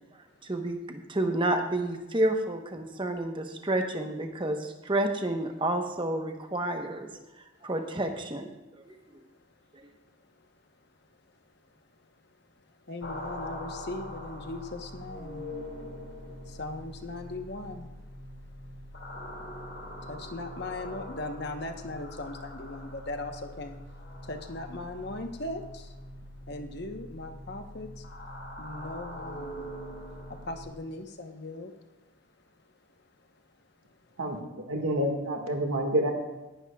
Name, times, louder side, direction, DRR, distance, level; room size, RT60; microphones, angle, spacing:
voice 1, 0.4-7.1 7.6-8.5 8.9-9.0 9.7-9.9, right 1 dB, 25° right, 4 dB, 1.0 m, -30 dB
voice 2, 12.9-15.5 16.4-17.9 19.1-19.2 20.0-23.8 24.2-26.0 26.5-28.1 28.6-29.7 30.3-31.7, left 2 dB, 50° left, 5 dB, 1.0 m, -39 dB
sound 1, 13.0-30.6, left 1 dB, 70° left, 2.4 m, -43 dB
voice 3, 34.2-36.1, right 1 dB, 90° right, 3 dB, 1.8 m, -28 dB
18.5 x 11.0 x 2.3 m, 1.1 s
head